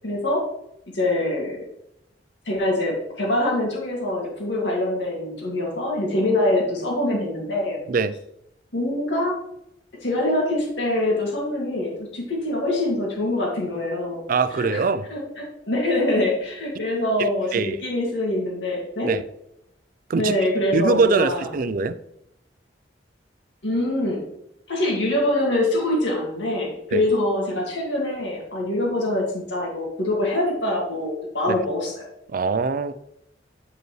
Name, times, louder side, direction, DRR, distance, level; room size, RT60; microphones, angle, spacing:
voice 1, 0.0-0.4 0.9-1.6 2.5-7.8 8.7-9.3 10.0-14.2 14.6-14.8 15.1-19.1 20.2-21.5 23.6-24.2 24.7-32.1, left 1 dB, 80° left, 2.2 m, -24 dB
voice 2, 14.3-15.1 17.2-17.8 19.0-19.2 20.1-20.3 20.7-22.0 26.9-27.0 31.5-31.6 32.3-32.9, right 4 dB, 50° right, 0.4 m, -22 dB
9.2 x 5.2 x 3.1 m
head